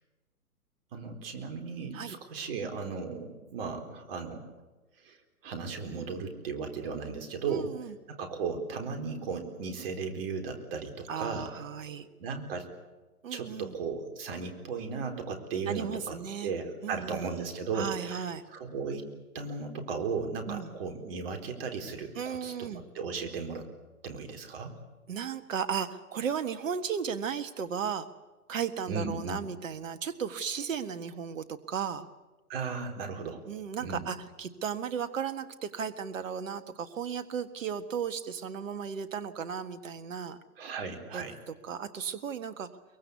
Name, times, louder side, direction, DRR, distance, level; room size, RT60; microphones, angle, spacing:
voice 1, 0.9-4.4 5.0-5.2 5.4-7.7 8.1-11.6 12.2-12.7 13.3-16.2 16.4-18.3 18.5-19.1 19.3-22.7 22.9-23.7 24.0-24.7 28.9-29.4 32.5-33.4 33.8-34.1 40.6-41.4, right 5 dB, 40° right, 5 dB, 4.2 m, -36 dB
voice 2, 7.5-7.9 11.1-12.1 13.2-13.7 15.7-16.5 16.8-17.5 17.7-18.4 20.4-20.7 22.1-22.8 25.1-28.1 28.5-32.1 33.5-40.4 41.1-41.2 41.6-42.7, right 7 dB, 60° right, 11 dB, 1.7 m, -35 dB
23.5 x 23.0 x 8.3 m, 1.2 s
figure-of-eight pair, 130°, 44 cm